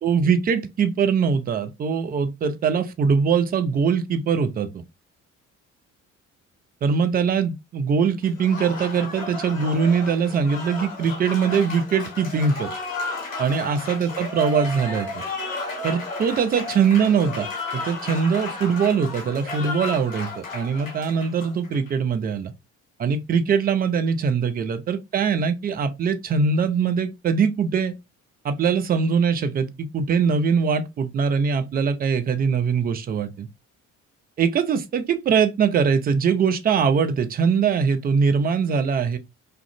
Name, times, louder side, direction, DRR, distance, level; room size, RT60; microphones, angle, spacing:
voice 1, 0.0-4.8 6.8-12.7 13.4-15.2 15.8-22.5 23.0-28.0 28.4-33.5 34.4-39.2, right 6 dB, 25° right, 0.4 m, -22 dB
Applause, 8.2-21.9, left 3 dB, 85° left, 0.6 m, -33 dB
2.4 x 2.1 x 2.6 m
figure-of-eight pair, 50°, 39 cm